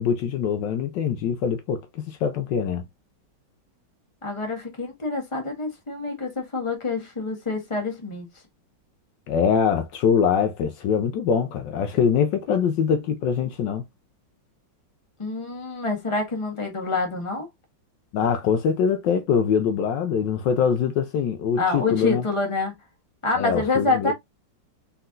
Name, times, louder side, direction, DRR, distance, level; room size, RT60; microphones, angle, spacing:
voice 1, 0.0-2.8 9.3-13.8 18.1-22.2 23.4-24.1, left 7 dB, 75° left, 1.2 m, -23 dB
voice 2, 4.2-8.3 15.2-17.5 21.6-22.7 23.2-24.1, left 3 dB, 15° left, 1.5 m, -27 dB
4.3 x 3.9 x 2.5 m
omnidirectional pair, 2.0 m